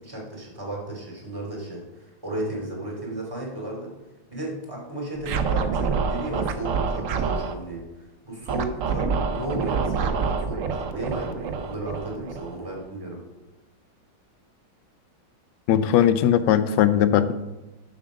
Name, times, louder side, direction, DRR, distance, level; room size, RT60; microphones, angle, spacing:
voice 1, 0.0-3.9 4.3-13.2, right 1 dB, 10° right, -2 dB, 2.6 m, -34 dB
Scratching (performance technique), 5.2-7.5 8.5-12.8, right 5 dB, 75° right, 0.7 m, -27 dB
voice 2, 15.7-17.3, left 10 dB, 75° left, 12 dB, 1.1 m, -19 dB
7.1 x 6.0 x 6.2 m, 1.0 s
omnidirectional pair, 2.3 m